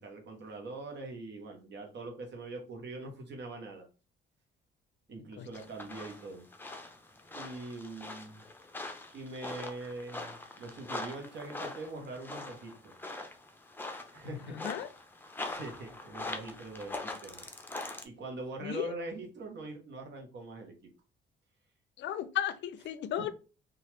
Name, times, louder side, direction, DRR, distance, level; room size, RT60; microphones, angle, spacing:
voice 1, 0.0-3.9 5.1-6.5 7.3-8.4 9.1-12.9 14.1-14.6 15.4-17.5 18.0-20.7 23.2-23.3, right 2 dB, 65° right, 0.9 m, -43 dB
sound 1, 5.5-18.0, left 2 dB, 10° left, 0.5 m, -43 dB
voice 2, 14.4-14.9 18.6-18.9 22.0-23.3, left 11 dB, 65° left, 0.4 m, -35 dB
2.9 x 2.3 x 3.1 m
cardioid pair, 90°, 20 cm